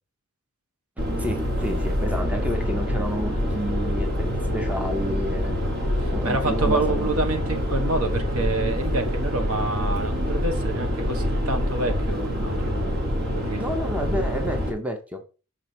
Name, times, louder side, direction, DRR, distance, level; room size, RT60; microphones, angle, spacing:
sound 1, 1.0-14.7, equal, 45° right, 1.7 m, -26 dB
voice 1, 1.2-4.3 4.5-5.6 6.1-7.1 13.6-15.2, equal, 5° right, 0.8 m, -30 dB
voice 2, 6.0-12.8 13.3-13.8, right 2 dB, 70° right, 1.2 m, -28 dB
5.9 x 4.9 x 4.4 m
head